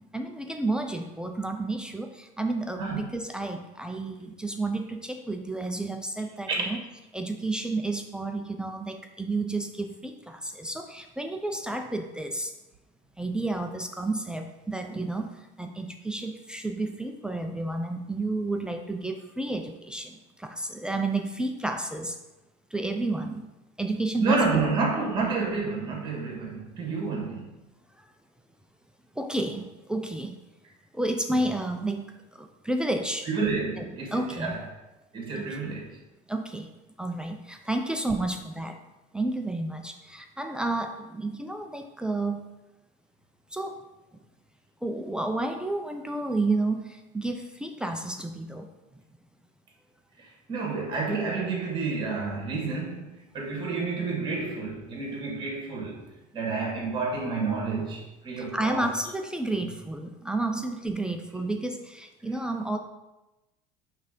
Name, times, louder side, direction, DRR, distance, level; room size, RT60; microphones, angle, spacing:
voice 1, 0.1-6.8 7.1-12.5 13.2-15.3 15.6-22.2 22.7-23.4 23.8-24.4 29.2-30.4 30.9-32.1 32.3-33.3 33.8-33.9 34.1-34.6 35.3-35.8 36.3-36.7 37.0-38.8 39.1-42.4 43.5-43.8 44.8-48.7 58.4-62.8, right 2 dB, 5° right, 4 dB, 0.3 m, -31 dB
voice 2, 24.2-27.5 33.3-34.6 35.1-35.9 50.5-53.1 53.3-56.0 56.3-58.9 59.4-59.6, right 4 dB, 30° right, 0 dB, 1.7 m, -29 dB
5.8 x 3.3 x 5.1 m, 1.0 s
cardioid pair, 150°, 17 cm